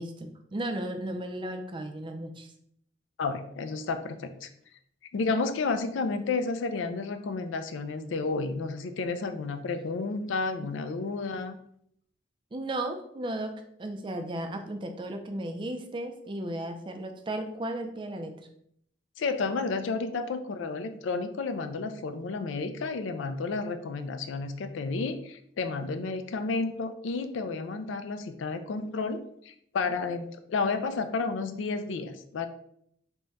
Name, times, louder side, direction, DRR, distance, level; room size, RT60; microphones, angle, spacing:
voice 1, 0.0-2.5 12.5-13.5 13.8-18.3, right 1 dB, 25° right, 5 dB, 0.4 m, -35 dB
voice 2, 3.2-4.5 5.1-11.6 19.2-32.5, left 4 dB, 75° left, 9 dB, 0.4 m, -31 dB
3.5 x 2.1 x 4.0 m, 0.69 s
head